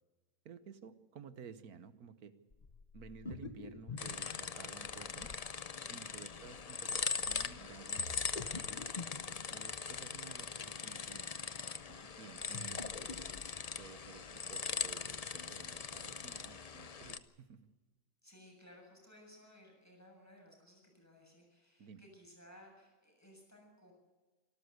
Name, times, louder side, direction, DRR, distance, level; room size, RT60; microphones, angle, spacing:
voice 1, 0.4-2.3 2.9-5.3 5.8-8.2 8.7-8.9 9.5-11.5 11.9-13.2 13.8-17.6 21.8-22.0, right 6 dB, 75° right, 12 dB, 1.6 m, -54 dB
sound 1, 2.5-5.3 8.0-10.0 12.4-13.8, left 4 dB, 30° left, 1.0 m, -47 dB
sound 2, 4.0-17.2, left 6 dB, 55° left, 0.4 m, -41 dB
voice 2, 6.2-6.6 12.5-13.5 18.2-23.9, left 1 dB, 10° left, 0 dB, 7.3 m, -60 dB
25.5 x 13.0 x 8.1 m, 1.3 s
omnidirectional pair, 1.6 m